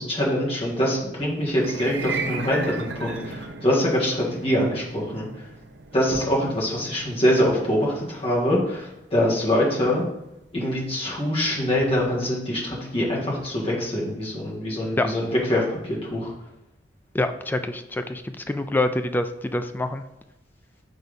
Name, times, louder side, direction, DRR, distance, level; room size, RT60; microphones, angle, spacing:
voice 1, 0.0-5.3 5.9-10.0 10.5-16.3, equal, 35° left, -4 dB, 1.8 m, -24 dB
sound 1, 1.5-11.9, right 4 dB, 70° right, 0.6 m, -37 dB
voice 2, 17.1-20.0, left 2 dB, 10° left, 8 dB, 0.3 m, -26 dB
4.6 x 4.2 x 5.0 m, 0.88 s
head